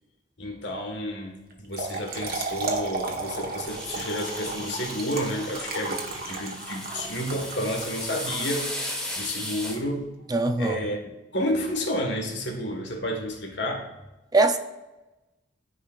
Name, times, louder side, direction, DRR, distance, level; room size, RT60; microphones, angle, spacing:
voice 1, 0.4-10.1 10.6-13.9, equal, 90° left, 2 dB, 1.5 m, -31 dB
Trickle dribble / Fill (with liquid), 1.5-9.0, right 3 dB, 55° right, 1.2 m, -34 dB
sound 1, 3.7-9.8, left 1 dB, 5° left, 1.5 m, -36 dB
voice 2, 10.3-10.8 14.3-14.6, right 2 dB, 20° right, 7 dB, 0.5 m, -21 dB
13.0 x 4.9 x 2.4 m, 1.0 s
head